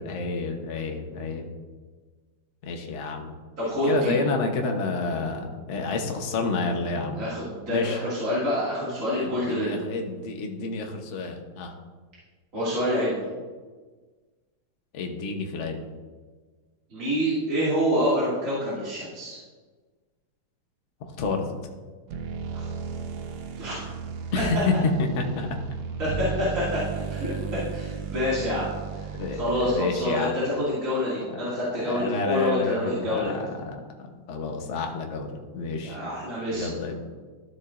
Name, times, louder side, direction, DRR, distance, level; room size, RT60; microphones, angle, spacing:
voice 1, 0.0-1.5 2.6-3.3 3.9-7.2 7.7-8.0 9.2-11.7 14.9-15.8 21.2-21.5 24.3-24.7 25.0-25.5 29.2-30.4 31.8-33.5 34.0-36.0 36.5-37.0, left 4 dB, 50° left, 3 dB, 1.0 m, -29 dB
voice 2, 3.6-4.1 7.2-9.9 12.5-13.3 16.9-19.4 22.5-22.7 23.6-23.8 24.3-24.4 26.0-26.8 27.1-28.6 28.9-29.0 29.3-33.4 35.8-36.7, equal, 40° right, -9 dB, 2.6 m, -27 dB
sound 1, 22.1-30.1, right 6 dB, 65° right, 1.1 m, -35 dB
13.0 x 6.8 x 2.5 m, 1.4 s
omnidirectional pair, 2.2 m